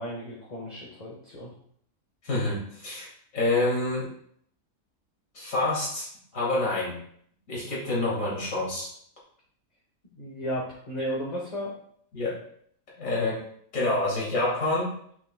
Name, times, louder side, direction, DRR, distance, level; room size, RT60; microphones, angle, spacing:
voice 1, 0.0-1.5 10.2-11.7, equal, 30° left, -4 dB, 1.3 m, -34 dB
voice 2, 2.2-4.1 5.3-7.0 7.5-8.9 12.1-12.4 12.9-13.4 13.7-14.9, left 2 dB, 70° left, -5 dB, 2.3 m, -27 dB
7.2 x 6.8 x 2.2 m, 0.64 s
omnidirectional pair, 1.5 m